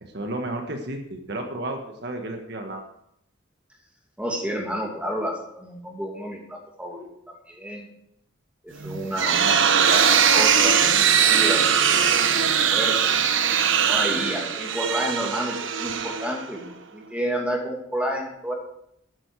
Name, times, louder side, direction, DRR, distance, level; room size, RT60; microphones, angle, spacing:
voice 1, 0.0-2.8 12.0-12.1, right 1 dB, 55° right, 3 dB, 1.5 m, -32 dB
voice 2, 4.2-7.1 7.5-7.9 8.6-11.6 11.9-12.0 12.4-13.2 13.8-18.5, equal, 5° right, 0 dB, 2.4 m, -30 dB
sound 1, 8.8-16.7, right 7 dB, 80° right, 0.9 m, -21 dB
12.5 x 9.8 x 4.8 m, 0.75 s
head